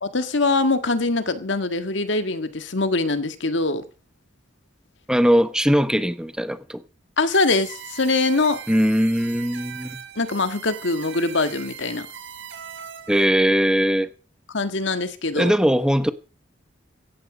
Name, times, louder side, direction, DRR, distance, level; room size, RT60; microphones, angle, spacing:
voice 1, 0.0-3.8 7.2-8.6 10.1-12.1 14.5-15.5, left 3 dB, 70° left, 1.8 m, -23 dB
voice 2, 5.1-6.8 8.7-10.0 13.1-14.1 15.4-16.1, equal, 5° right, 0.9 m, -20 dB
sound 1, 7.3-13.3, right 8 dB, 75° right, 4.8 m, -40 dB
16.5 x 14.5 x 5.1 m
head